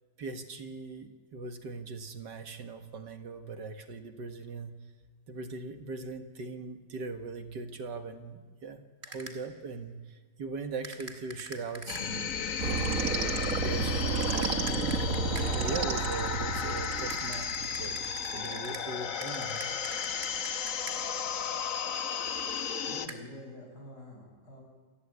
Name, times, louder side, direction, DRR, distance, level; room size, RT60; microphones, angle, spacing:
voice 1, 0.2-4.7 5.3-8.8 9.1-10.0 10.4-12.8 13.3-15.0 15.5-17.5 17.8-18.1 18.3-19.7, right 3 dB, 75° right, 7 dB, 2.3 m, -40 dB
sound 1, 9.0-9.6 10.8-12.3 14.2-15.7 17.1-21.2 23.1-23.2, right 3 dB, 35° right, 2.4 m, -46 dB
sound 2, 11.9-23.1, left 7 dB, 55° left, 1.3 m, -34 dB
sound 3, 12.6-18.6, right 4 dB, 50° right, 1.8 m, -32 dB
voice 2, 22.8-24.6, left 1 dB, 70° left, 0 dB, 8.0 m, -46 dB
28.0 x 15.0 x 9.9 m, 1.5 s
omnidirectional pair, 1.9 m